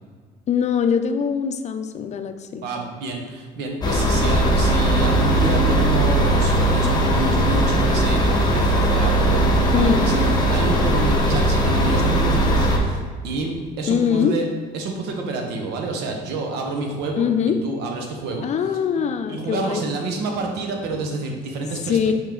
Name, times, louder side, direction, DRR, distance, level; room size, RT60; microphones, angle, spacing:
voice 1, 0.5-2.6 9.7-10.1 13.9-14.4 17.2-17.6 18.4-19.8 21.9-22.1, left 7 dB, 40° left, 8 dB, 0.5 m, -22 dB
voice 2, 2.6-14.5 14.7-18.5 19.0-22.0, right 3 dB, 90° right, 2 dB, 1.1 m, -29 dB
sound 1, 3.8-12.8, right 1 dB, 25° left, 1.2 m, -19 dB
5.9 x 5.1 x 3.8 m, 1.5 s
cardioid pair, 110°, 17 cm